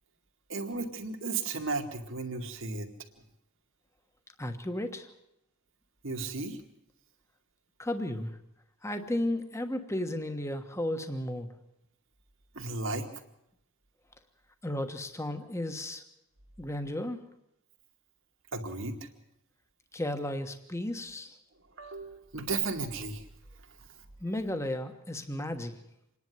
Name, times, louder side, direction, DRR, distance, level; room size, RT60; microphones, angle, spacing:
voice 1, 0.5-2.9 6.0-6.6 12.5-13.1 18.5-19.1 21.8-23.2, right 3 dB, 60° right, 4 dB, 2.3 m, -34 dB
voice 2, 4.4-5.1 7.8-8.4 8.8-11.6 14.6-16.0 16.6-17.2 19.9-21.4 24.2-25.8, left 1 dB, 15° left, 7 dB, 1.3 m, -34 dB
27.0 x 11.0 x 9.5 m, 0.80 s
head